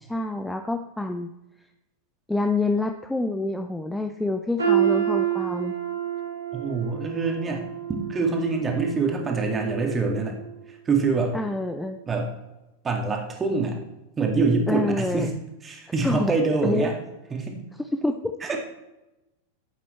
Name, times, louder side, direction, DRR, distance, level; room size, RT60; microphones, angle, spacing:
voice 1, 0.1-1.3 2.3-5.7 11.3-12.0 14.7-15.3 16.0-16.3 16.6-16.9 17.9-18.4, left 2 dB, 5° left, 6 dB, 0.5 m, -27 dB
sound 1, 4.6-10.5 10.9-11.2 11.9-12.0, right 10 dB, 80° right, 2.5 m, -28 dB
voice 2, 6.5-7.7 8.1-10.4 10.7-11.4 12.1-12.3 12.8-13.8 14.2-15.3 15.6-17.0 17.3-17.6 18.4-18.6, right 4 dB, 20° right, 2 dB, 2.1 m, -25 dB
11.5 x 8.4 x 3.2 m, 0.99 s
figure-of-eight pair, 90°, 0 cm